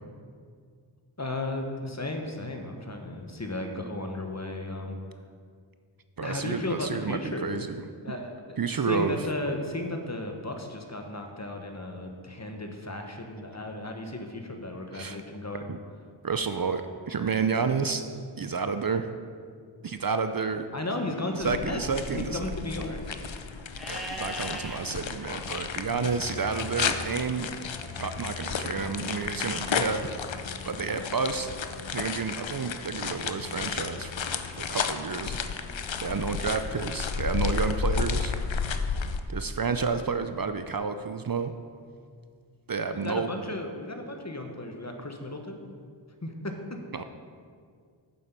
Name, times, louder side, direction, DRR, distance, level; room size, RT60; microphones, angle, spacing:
voice 1, 1.2-5.0 6.2-7.5 8.0-15.6 20.7-21.8 22.2-23.2 25.9-26.0 42.9-45.6 46.2-46.5, left 2 dB, 35° left, 4 dB, 1.2 m, -34 dB
voice 2, 6.2-7.8 8.6-9.2 14.9-15.2 15.7-15.8 16.2-18.0 18.4-19.1 19.8-20.7 21.4-22.5 23.9-27.5 28.0-30.1 30.6-31.5 31.9-34.1 34.5-35.4 36.0-38.3 39.3-41.5 42.7-43.4 46.9-47.0, right 5 dB, 45° right, 9 dB, 0.5 m, -30 dB
sound 1, 21.4-39.2, left 6 dB, 70° left, 0.7 m, -32 dB
Livestock farm animals working animals, 23.7-24.8 27.6-28.6, equal, ahead, 1.4 m, -40 dB
8.5 x 7.3 x 6.0 m, 2.1 s
wide cardioid pair, 40°, 48 cm